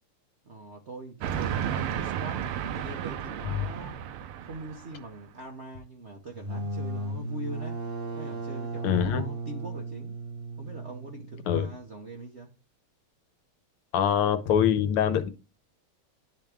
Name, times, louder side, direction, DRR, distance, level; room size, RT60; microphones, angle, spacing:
voice 1, 0.4-4.0 4.4-7.8 8.1-10.2 10.6-12.5, right 1 dB, 60° right, 0.6 m, -43 dB
Train, 1.2-5.1, right 9 dB, 90° right, 1.6 m, -33 dB
sound 1, 6.3-11.8, right 2 dB, 45° right, 1.5 m, -36 dB
voice 2, 8.8-9.2 11.5-11.7 13.9-15.3, left 9 dB, 85° left, 1.7 m, -24 dB
10.5 x 3.6 x 3.4 m
omnidirectional pair, 2.4 m